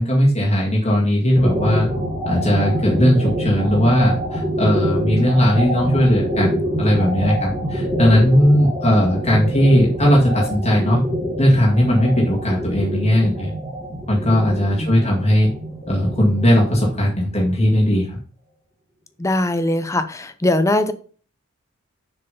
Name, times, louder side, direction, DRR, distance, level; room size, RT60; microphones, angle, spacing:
voice 1, 0.0-1.9 2.3-11.1 11.4-13.5 14.1-15.5 15.9-18.1, equal, 30° left, 1.9 m, -17 dB
sound 1, 1.4-17.4, equal, 15° right, 1.4 m, -26 dB
voice 2, 14.8-15.3 19.2-20.9, left 1 dB, 15° left, 0.6 m, -21 dB
6.5 x 4.7 x 5.3 m
head